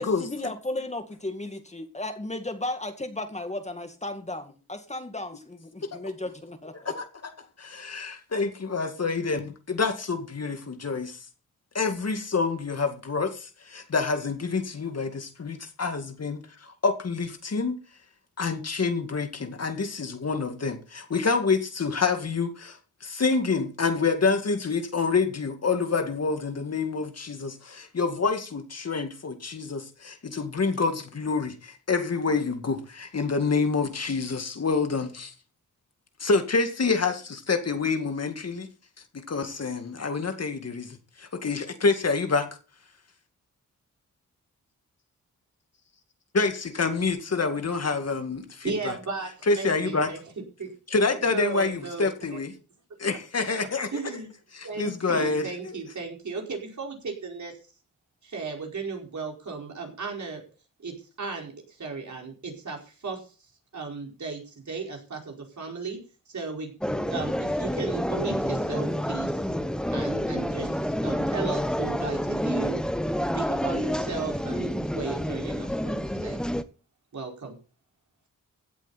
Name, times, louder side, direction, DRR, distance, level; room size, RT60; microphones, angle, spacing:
voice 1, 0.0-6.9, left 2 dB, 20° left, 2.3 m, -35 dB
voice 2, 6.9-7.3 7.6-11.2 11.7-17.8 18.4-35.3 36.2-38.7 39.1-42.5 46.3-48.9 49.5-50.1 50.9-52.5 53.0-53.9 54.5-55.8, left 4 dB, 50° left, 2.1 m, -27 dB
voice 3, 48.6-50.2 50.6-50.7 51.2-52.4 53.9-54.3 54.6-57.6 58.2-60.4 60.8-63.3 63.7-66.0 66.3-66.7 67.1-69.5 69.9-72.8 73.3-76.4 77.1-77.6, right 4 dB, 60° right, 4.8 m, -35 dB
sound 1, 66.8-76.6, equal, ahead, 1.0 m, -28 dB
16.0 x 8.2 x 4.3 m
cardioid pair, 60°, 32 cm